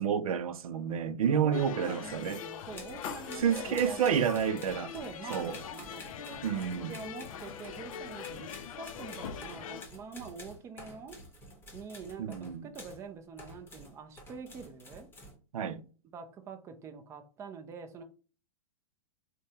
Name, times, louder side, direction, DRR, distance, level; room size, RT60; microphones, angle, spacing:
voice 1, 0.0-2.4 3.4-4.9 5.3-5.6 6.4-7.0 12.2-12.7 15.5-15.8, right 8 dB, 90° right, 0.5 m, -29 dB
voice 2, 1.3-4.2 4.9-6.4 6.9-11.2 11.7-15.1 16.1-18.0, right 5 dB, 15° right, 0.4 m, -45 dB
sound 1, 1.5-9.9, left 8 dB, 70° left, 0.5 m, -42 dB
sound 2, 2.7-13.1 13.4-15.3, left 1 dB, 10° left, 0.9 m, -50 dB
3.5 x 2.1 x 2.7 m
hypercardioid pair, 135°, 18 cm